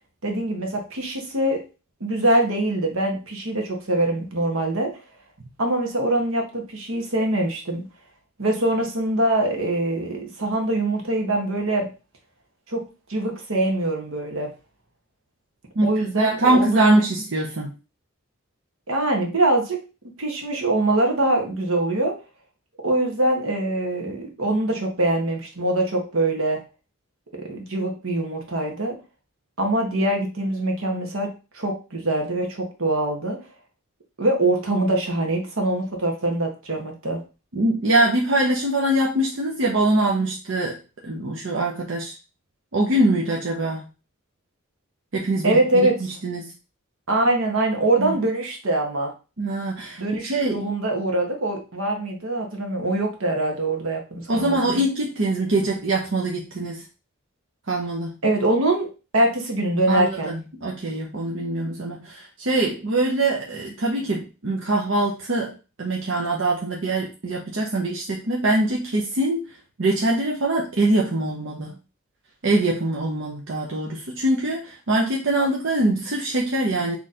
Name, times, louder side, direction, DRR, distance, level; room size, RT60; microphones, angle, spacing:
voice 1, 0.2-1.6 2.0-4.9 5.6-7.8 8.4-11.9 12.7-12.8 13.1-14.5 15.8-17.0 18.9-19.8 20.2-22.1 22.8-26.6 27.3-29.0 29.6-33.4 34.2-37.2 45.4-45.9 47.1-49.1 50.0-54.8 58.2-58.9 59.1-60.3, right 1 dB, 80° right, 2 dB, 1.3 m, -23 dB
voice 2, 15.8-17.7 37.5-42.1 42.7-43.8 45.1-45.9 46.2-46.5 48.0-48.2 49.4-50.6 54.3-56.8 57.7-58.2 59.9-65.5 65.8-69.5 69.8-71.8 72.4-77.0, right 2 dB, 60° right, -2 dB, 0.8 m, -23 dB
4.2 x 3.1 x 3.7 m, 0.32 s
head